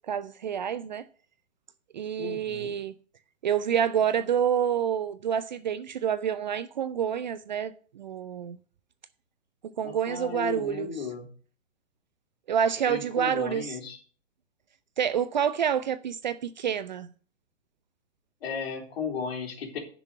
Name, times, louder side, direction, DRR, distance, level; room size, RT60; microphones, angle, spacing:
voice 1, 0.1-1.0 1.9-2.9 3.4-8.6 9.8-10.9 12.5-13.8 15.0-17.1, right 8 dB, 40° right, 0.5 m, -28 dB
voice 2, 2.2-2.7 9.8-11.3 12.9-14.0 18.4-19.8, left 6 dB, 50° left, 3.6 m, -35 dB
10.5 x 6.1 x 6.7 m
figure-of-eight pair, 125°, 38 cm